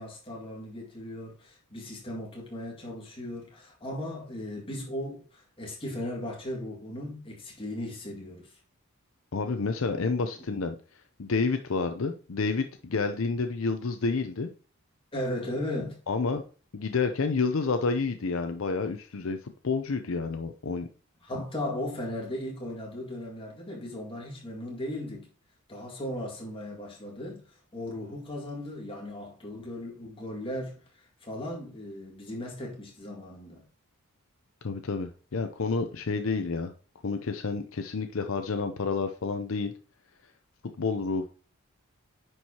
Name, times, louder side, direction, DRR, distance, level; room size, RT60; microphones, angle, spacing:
voice 1, 0.0-8.5 9.9-10.6 15.1-16.0 21.2-25.3 25.7-27.4 27.7-33.6, left 1 dB, 25° left, 2.0 m, -37 dB
voice 2, 9.3-10.8 11.2-14.5 16.1-16.4 16.7-20.9 34.6-36.7 37.0-39.7 40.8-41.3, left 4 dB, 60° left, 0.6 m, -29 dB
9.8 x 4.7 x 2.8 m
head